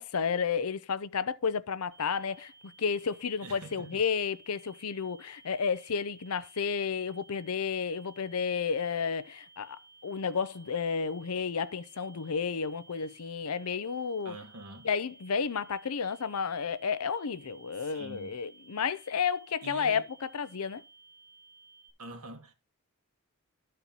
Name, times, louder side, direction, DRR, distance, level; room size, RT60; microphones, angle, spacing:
voice 1, 0.0-14.4 14.8-20.8, left 6 dB, 75° left, 0.6 m, -32 dB
sound 1, 1.9-21.9, right 4 dB, 25° right, 3.8 m, -57 dB
voice 2, 3.4-4.0 14.2-14.9 17.8-18.3 19.6-20.1 22.0-22.5, right 2 dB, 80° right, 2.0 m, -45 dB
12.5 x 4.4 x 5.3 m
head